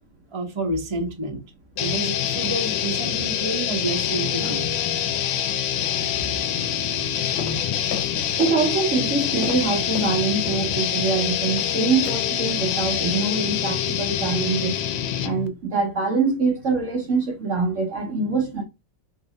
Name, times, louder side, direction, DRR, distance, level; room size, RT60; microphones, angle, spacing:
voice 1, 0.3-1.4 1.8-4.7, right 2 dB, 30° right, 0.5 m, -29 dB
sound 1, 1.8-15.5, left 9 dB, 90° left, 1.4 m, -25 dB
sound 2, 7.4-8.6 8.9-10.7 11.0-11.7 12.0-12.2 12.5-12.7 13.1-13.3 13.6-13.7, left 6 dB, 70° left, 1.6 m, -36 dB
voice 2, 8.4-14.8 15.2-18.6, right 4 dB, 60° right, 0.8 m, -24 dB
3.2 x 2.8 x 3.8 m
omnidirectional pair, 2.0 m